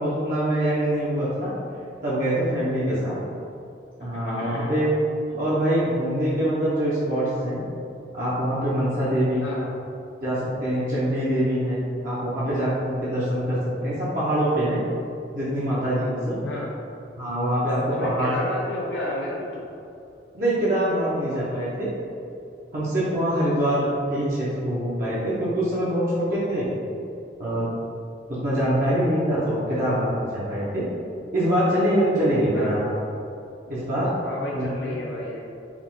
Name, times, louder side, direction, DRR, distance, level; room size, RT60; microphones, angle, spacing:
voice 1, 0.0-1.5 2.0-3.1 4.0-4.9 5.3-7.6 8.1-9.5 10.2-14.8 15.3-16.4 17.2-18.3 20.3-21.9 22.7-26.7 27.4-27.7 28.4-30.8 31.3-32.9 33.7-34.1 34.5-34.9, right 1 dB, 45° right, -10 dB, 0.8 m, -24 dB
voice 2, 4.4-4.7 5.3-5.4 9.4-9.7 16.4-16.7 17.9-19.6 32.5-32.9 34.2-35.4, left 1 dB, 70° left, -4 dB, 0.5 m, -32 dB
4.7 x 2.4 x 3.7 m, 2.6 s
head